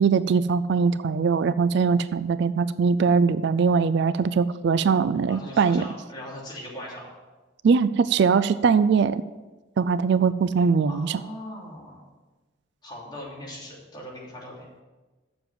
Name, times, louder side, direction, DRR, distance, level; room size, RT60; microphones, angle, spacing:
voice 1, 0.0-5.8 7.6-9.2 9.8-11.2, right 5 dB, 60° right, 14 dB, 0.3 m, -21 dB
voice 2, 5.3-7.1 10.9-12.0 12.8-14.7, left 1 dB, 25° left, -4 dB, 3.0 m, -40 dB
7.5 x 7.0 x 7.6 m, 1.2 s
head